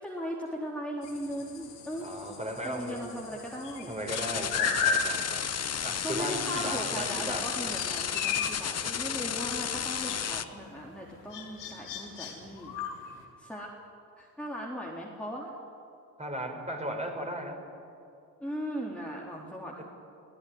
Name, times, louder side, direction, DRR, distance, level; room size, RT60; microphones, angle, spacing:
voice 1, 0.0-2.2 2.6-3.9 6.0-12.7 13.1-13.7 14.2-15.5 18.4-19.8, equal, 5° left, -3 dB, 3.9 m, -38 dB
sound 1, 1.0-13.2, left 5 dB, 65° left, 3.6 m, -37 dB
voice 2, 2.0-3.0 3.9-5.4 5.8-7.7 16.2-17.6 19.3-19.5 19.8-19.9, right 1 dB, 15° right, 2 dB, 5.6 m, -36 dB
sound 2, 4.1-10.4, left 8 dB, 35° left, 1.1 m, -33 dB
23.0 x 16.5 x 9.7 m, 2.6 s
figure-of-eight pair, 45°, 46 cm